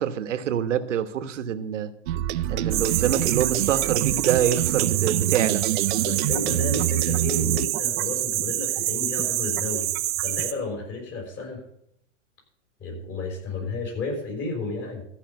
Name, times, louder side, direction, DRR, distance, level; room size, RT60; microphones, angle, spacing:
voice 1, 0.0-1.9 2.5-5.6, right 9 dB, 80° right, 10 dB, 1.3 m, -25 dB
sound 1, 2.1-7.7, right 13 dB, 60° right, 0.7 m, -26 dB
sound 2, 2.7-10.5, right 14 dB, 25° right, 0.7 m, -27 dB
voice 2, 6.0-9.9 10.2-11.6 12.8-15.0, left 3 dB, 30° left, 0 dB, 5.5 m, -32 dB
14.0 x 5.6 x 8.1 m, 0.72 s
hypercardioid pair, 130°, 36 cm